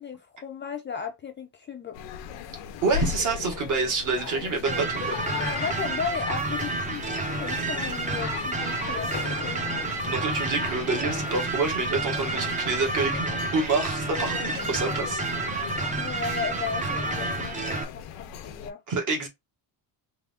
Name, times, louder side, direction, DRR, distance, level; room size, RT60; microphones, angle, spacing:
voice 1, 0.0-2.0 5.4-7.1 7.4-9.6 16.0-18.8, left 6 dB, 25° left, 0.4 m, -35 dB
sound 1, 1.9-18.7, left 9 dB, 90° left, 0.7 m, -38 dB
voice 2, 2.8-5.2 10.0-15.2 18.9-19.3, right 3 dB, 45° right, 1.5 m, -27 dB
sound 2, 4.7-17.8, right 3 dB, 20° right, 0.6 m, -30 dB
3.7 x 2.8 x 3.4 m
cardioid pair, 175°, 43 cm